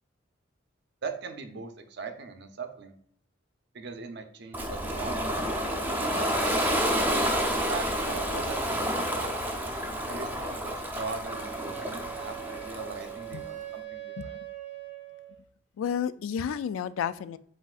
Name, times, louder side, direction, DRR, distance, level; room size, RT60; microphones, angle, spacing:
voice 1, 1.0-2.9 3.7-6.7 7.5-9.3 10.1-14.4, right 4 dB, 60° right, 6 dB, 0.6 m, -40 dB
Ocean, 4.5-13.4, equal, 10° right, 0.6 m, -29 dB
Wind instrument woodwind instrument, 11.2-15.4, right 13 dB, 45° left, 1.5 m, -41 dB
voice 2, 15.8-17.4, left 8 dB, 90° left, 15 dB, 0.3 m, -31 dB
7.4 x 2.6 x 2.4 m, 0.65 s
head